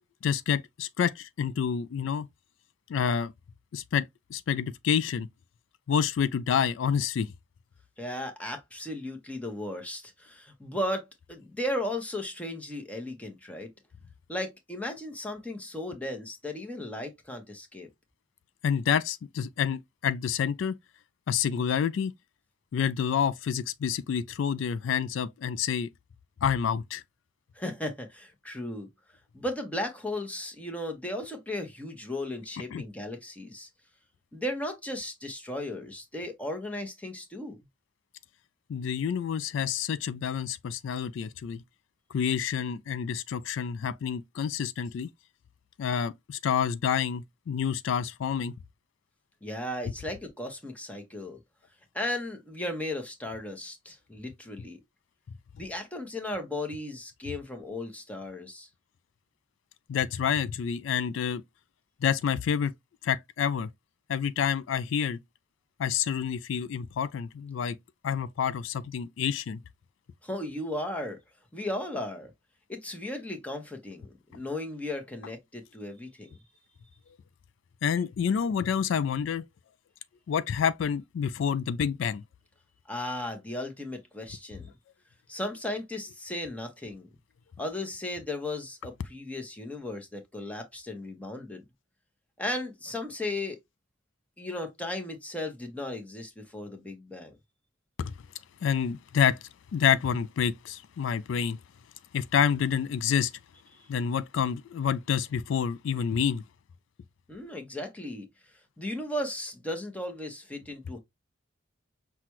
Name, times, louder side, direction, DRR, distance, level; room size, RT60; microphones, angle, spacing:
voice 1, 0.2-2.3 2.9-3.3 3.7-5.3 5.9-7.3 18.6-20.8 21.3-22.1 22.7-25.9 26.4-27.0 32.7-32.8 38.7-41.6 42.1-45.1 45.8-48.5 59.9-61.4 62.0-62.7 63.0-63.7 64.1-65.2 65.8-67.8 68.0-69.6 77.8-79.4 80.3-82.2 98.0-98.1 98.6-101.6 102.1-103.3 103.9-106.4, left 7 dB, 70° left, 0.3 m, -28 dB
voice 2, 8.0-13.7 14.3-17.9 27.5-28.9 29.3-33.7 34.3-37.6 49.4-51.4 51.9-54.8 55.6-58.7 70.2-71.2 71.5-72.3 72.7-76.4 82.9-84.7 85.3-87.1 87.6-91.6 92.4-93.6 94.4-97.3 107.3-108.3 108.8-111.0, left 1 dB, 5° left, 0.9 m, -36 dB
5.8 x 2.3 x 3.0 m
head